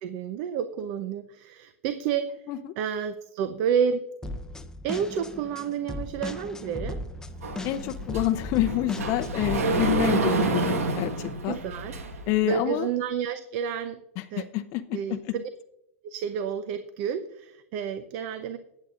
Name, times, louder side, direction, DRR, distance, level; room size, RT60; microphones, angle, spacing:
voice 1, 0.0-2.4 2.8-4.0 4.8-7.0 11.5-11.9 12.2-14.0 14.3-14.5 14.9-15.5 16.0-18.6, right 7 dB, 55° right, 11 dB, 0.7 m, -30 dB
sound 1, 4.2-9.6, left 1 dB, 10° left, 0.8 m, -37 dB
Sliding door, 7.4-12.4, right 3 dB, 85° right, 1.4 m, -28 dB
voice 2, 7.6-11.6 12.3-12.9 14.2-15.3, left 14 dB, 45° left, 7 dB, 0.6 m, -28 dB
20.5 x 8.4 x 2.5 m, 0.85 s
hypercardioid pair, 110°, 7 cm